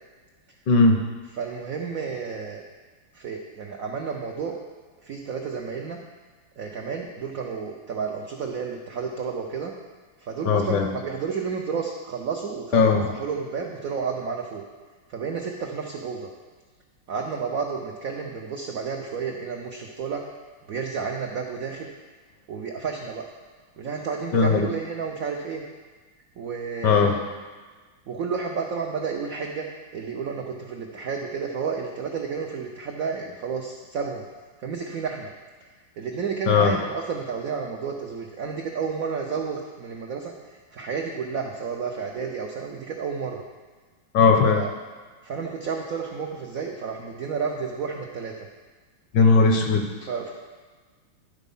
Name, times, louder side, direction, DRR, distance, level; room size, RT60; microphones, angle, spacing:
voice 1, 0.7-1.0 10.5-10.9 12.7-13.1 24.3-24.7 26.8-27.1 36.5-36.8 44.1-44.6 49.1-49.9, left 4 dB, 70° left, 4 dB, 1.1 m, -18 dB
voice 2, 1.3-2.6 3.1-4.6 5.0-6.0 6.6-9.7 10.2-14.6 15.1-16.3 17.1-20.2 20.7-21.9 22.5-23.3 23.8-25.6 26.4-27.2 28.1-29.7 29.9-34.2 34.6-35.3 36.0-43.4 44.4-44.7 45.2-48.5 50.0-50.3, right 5 dB, 90° right, 1 dB, 0.7 m, -31 dB
11.0 x 4.1 x 5.4 m, 1.4 s
omnidirectional pair, 2.3 m